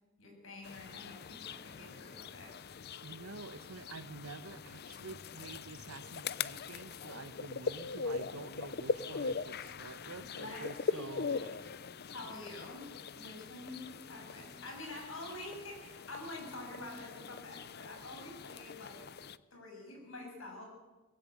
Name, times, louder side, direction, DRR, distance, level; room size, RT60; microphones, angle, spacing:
voice 1, 0.2-2.5 10.4-10.6 10.9-11.4 12.1-12.9 13.1-19.1 19.5-20.6, left 2 dB, 70° left, 1 dB, 7.0 m, -47 dB
sound 1, 0.6-19.4, left 5 dB, 50° left, 0.6 m, -42 dB
voice 2, 3.0-11.7, right 3 dB, 85° right, 13 dB, 1.2 m, -48 dB
20.0 x 16.0 x 8.1 m, 1.2 s
head